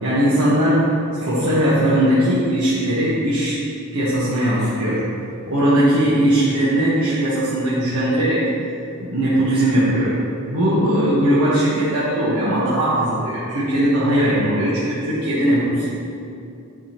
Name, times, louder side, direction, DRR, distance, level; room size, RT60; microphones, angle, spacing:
voice 1, 0.0-3.7 3.9-5.0 5.5-8.5 9.0-10.1 10.5-15.9, right 1 dB, 80° right, -10 dB, 1.4 m, -19 dB
9.9 x 5.3 x 3.0 m, 2.6 s
head